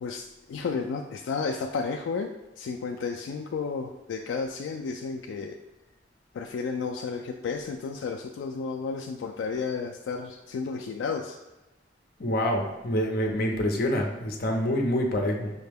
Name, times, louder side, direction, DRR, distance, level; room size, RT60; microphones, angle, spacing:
voice 1, 0.0-5.6 6.3-11.4, left 5 dB, 80° left, 3 dB, 0.3 m, -32 dB
voice 2, 12.2-15.5, equal, 55° left, 1 dB, 0.7 m, -26 dB
5.5 x 2.2 x 3.4 m, 1.1 s
head